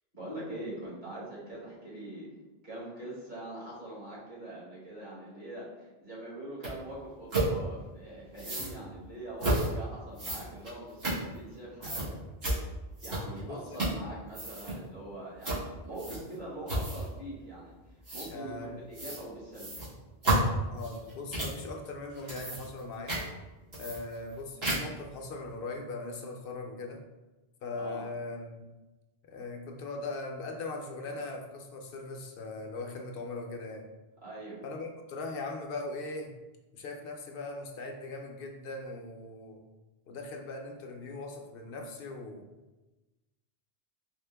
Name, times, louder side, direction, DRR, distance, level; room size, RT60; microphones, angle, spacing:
voice 1, 0.1-2.3 2.6-12.2 13.0-17.7 18.1-19.7 27.7-28.0 34.2-34.6, right 1 dB, 50° right, -8 dB, 1.6 m, -43 dB
sound 1, 6.6-6.7 7.3-7.5 8.3-8.7 9.4-9.7 10.1-11.5 11.8-12.1 12.4-12.6 13.0-13.4 13.7-14.0 14.3-14.7 15.4-15.6 16.0-16.3 16.7-17.1 18.0-18.3 18.9-19.2 19.5-21.6 22.1-22.8 23.1-23.2 23.7-24.3 24.6-25.0, right 1 dB, 75° right, 1.8 m, -31 dB
voice 2, 13.4-13.8 18.3-18.9 20.6-23.2 23.7-27.0 27.6-28.7 29.3-33.8 34.6-36.3 36.7-39.6 40.1-42.4, left 3 dB, 70° left, 2 dB, 0.7 m, -40 dB
4.4 x 2.1 x 3.3 m, 1.1 s
omnidirectional pair, 1.0 m